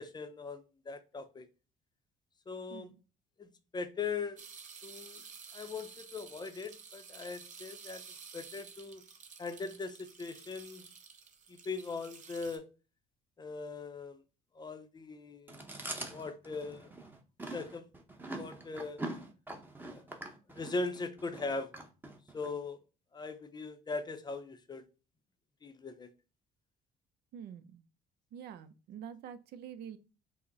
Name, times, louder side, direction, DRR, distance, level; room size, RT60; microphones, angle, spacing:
voice 1, 0.0-1.5 2.5-2.9 3.4-4.4 4.8-5.2 5.5-8.0 8.3-9.0 9.4-10.9 11.5-12.7 13.4-14.2 14.5-15.6 16.1-16.9 17.5-17.9 18.4-19.0 19.8-20.1 20.5-21.7 22.3-22.8 23.1-24.9 25.6-26.1, left 4 dB, 25° left, 0.5 m, -40 dB
sound 1, 4.4-12.6, right 6 dB, 45° right, 0.8 m, -52 dB
Chewing mastication, 15.5-22.5, right 2 dB, 10° right, 0.7 m, -44 dB
voice 2, 27.3-27.8 28.3-30.0, right 8 dB, 70° right, 0.5 m, -46 dB
5.7 x 2.1 x 3.9 m
cardioid pair, 110°, 17 cm